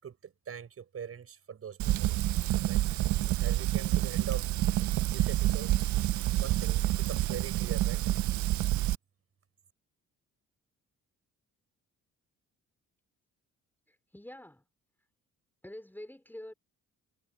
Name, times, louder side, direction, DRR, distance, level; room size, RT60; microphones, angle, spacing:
voice 1, 0.0-2.8 3.4-4.5 5.0-5.8 6.4-8.0, right 7 dB, 50° right, 6.1 m, -43 dB
Fire, 1.8-8.9, right 15 dB, 70° right, 0.6 m, -28 dB
voice 2, 13.9-14.6 15.6-16.5, left 1 dB, 5° left, 4.7 m, -46 dB
cardioid pair, 90°, 30 cm